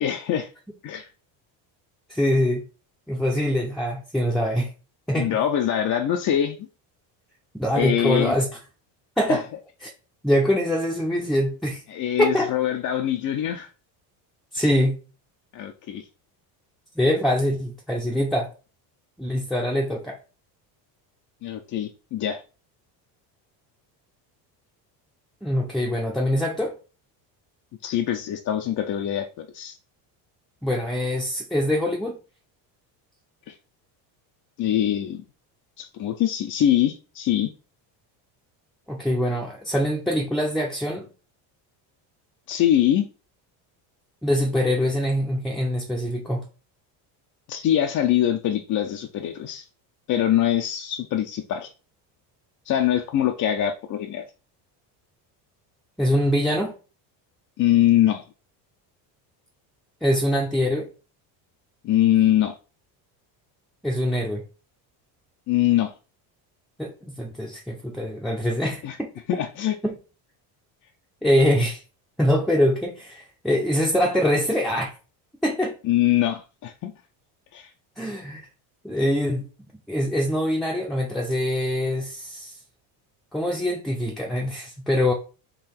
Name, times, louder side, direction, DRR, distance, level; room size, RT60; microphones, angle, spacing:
voice 1, 0.0-0.5 0.8-1.1 5.1-6.7 7.7-8.4 9.3-9.4 11.9-13.7 15.5-16.0 21.4-22.4 27.8-29.8 33.5-33.6 34.6-35.2 35.8-37.5 42.5-43.1 47.5-49.7 50.1-51.7 52.7-54.2 57.6-58.2 61.8-62.6 65.5-65.9 68.8-69.0 69.3-69.8 75.8-76.9 77.5-77.7, left 11 dB, 40° left, 0.5 m, -23 dB
voice 2, 2.1-2.6 3.1-4.7 5.1-5.3 7.6-8.5 9.2-9.4 9.8-9.9 10.2-11.8 12.2-12.5 14.5-15.0 17.0-18.5 19.2-20.2 25.4-26.7 30.6-32.2 38.9-41.1 44.2-46.4 56.0-56.7 60.0-60.9 63.8-64.4 66.8-69.1 69.8-69.9 71.2-71.8 72.2-74.9 75.4-75.7 78.0-78.5 78.8-79.5 79.9-82.6 83.3-85.1, equal, ahead, 0.6 m, -23 dB
3.9 x 2.8 x 4.2 m
cardioid pair, 115°, 47 cm